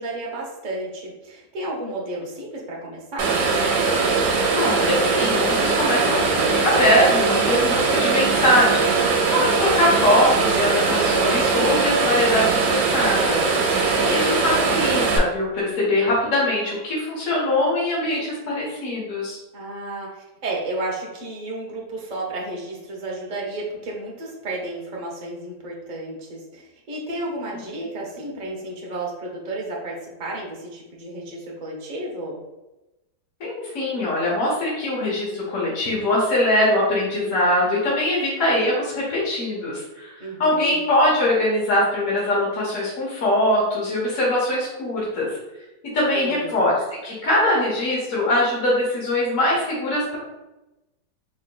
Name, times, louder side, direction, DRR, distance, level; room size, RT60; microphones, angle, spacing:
voice 1, 0.0-3.3 14.0-14.3 19.5-32.4 40.2-40.8 46.2-46.6, right 2 dB, 55° right, -3 dB, 0.4 m, -32 dB
sound 1, 3.2-15.2, right 4 dB, 75° right, 1.2 m, -20 dB
voice 2, 4.5-13.4 14.0-19.4 33.4-40.1 40.4-45.4 45.9-46.7 47.0-50.2, left 1 dB, 55° left, -6 dB, 1.4 m, -22 dB
3.6 x 3.3 x 2.2 m, 1.0 s
omnidirectional pair, 1.9 m